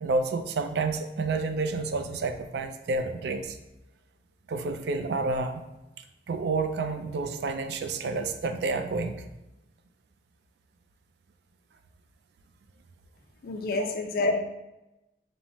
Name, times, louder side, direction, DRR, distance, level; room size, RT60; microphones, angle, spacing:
voice 1, 0.0-3.6 4.5-5.6 6.3-9.3 13.8-13.9, right 3 dB, 65° right, 7 dB, 0.3 m, -29 dB
voice 2, 13.4-14.4, left 2 dB, 55° left, 4 dB, 0.4 m, -27 dB
5.4 x 2.0 x 2.9 m, 0.96 s
head